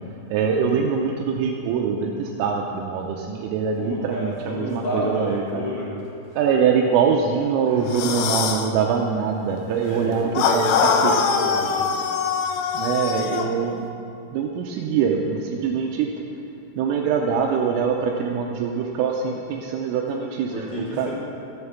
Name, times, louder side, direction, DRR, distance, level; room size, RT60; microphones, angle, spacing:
voice 1, 0.3-5.6 6.4-11.1 12.7-13.9 14.3-16.1 16.8-21.1, right 6 dB, 85° right, 0 dB, 3.2 m, -23 dB
voice 2, 3.8-5.9 7.6-8.3 9.9-11.9 20.5-21.1, left 1 dB, 30° left, -9 dB, 3.9 m, -30 dB
sound 1, 7.9-8.7 10.4-13.5, left 6 dB, 80° left, 3.1 m, -22 dB
13.0 x 8.0 x 7.1 m, 2.6 s
omnidirectional pair, 6.0 m